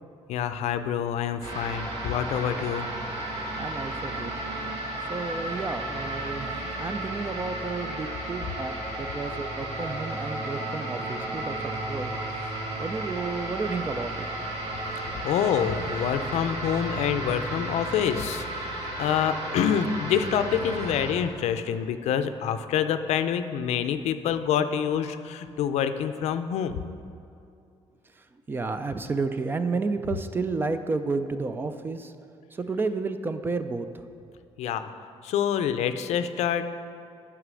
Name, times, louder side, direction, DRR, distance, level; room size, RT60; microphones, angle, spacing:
voice 1, 0.3-2.9 15.0-26.8 34.6-34.9 35.2-36.6, left 8 dB, 75° left, 10 dB, 0.5 m, -27 dB
sound 1, 1.4-21.1, right 1 dB, 50° right, 2.1 m, -33 dB
voice 2, 3.6-4.3 5.1-8.7 9.0-12.1 12.3-12.5 12.8-14.3 28.5-32.1 32.5-33.9, right 3 dB, 20° right, 9 dB, 0.3 m, -31 dB
9.7 x 5.9 x 6.2 m, 2.5 s
cardioid pair, 180°, 11 cm